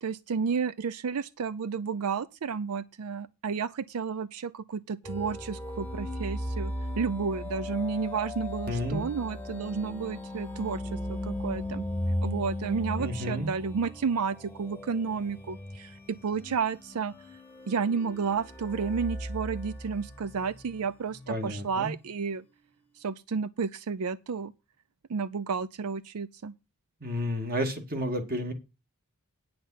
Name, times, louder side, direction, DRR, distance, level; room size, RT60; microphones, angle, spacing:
voice 1, 0.0-11.9 12.2-17.1 17.7-22.4 23.0-24.5 25.1-26.5, right 5 dB, 90° right, 0.5 m, -31 dB
sound 1, 5.0-20.7 21.2-21.3, left 1 dB, 10° left, 1.0 m, -37 dB
voice 2, 8.7-9.1 13.0-13.5 21.3-21.9 27.0-28.5, equal, 45° right, 2.0 m, -31 dB
9.5 x 7.7 x 5.6 m
head